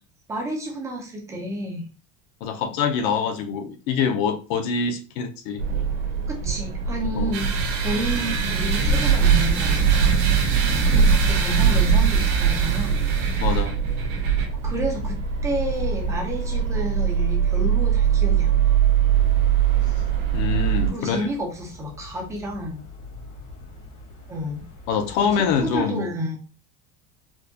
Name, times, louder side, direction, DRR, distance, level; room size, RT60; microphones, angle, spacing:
voice 1, 0.3-1.9 6.3-7.5 7.8-10.1 10.9-12.9 14.6-15.1 15.4-18.7 20.9-22.8 24.3-24.6 25.2-26.4, equal, 10° right, -1 dB, 0.3 m, -30 dB
voice 2, 2.4-5.6 7.1-7.3 13.4-13.8 20.3-21.3 24.9-26.1, left 6 dB, 50° left, 7 dB, 0.5 m, -25 dB
sound 1, 5.6-20.9, right 7 dB, 85° right, 1.6 m, -21 dB
sound 2, 7.3-14.5, right 5 dB, 55° right, 0.8 m, -29 dB
sound 3, 19.1-25.8, left 2 dB, 75° left, 1.8 m, -44 dB
4.4 x 2.1 x 2.6 m, 0.35 s
cardioid pair, 175°, 38 cm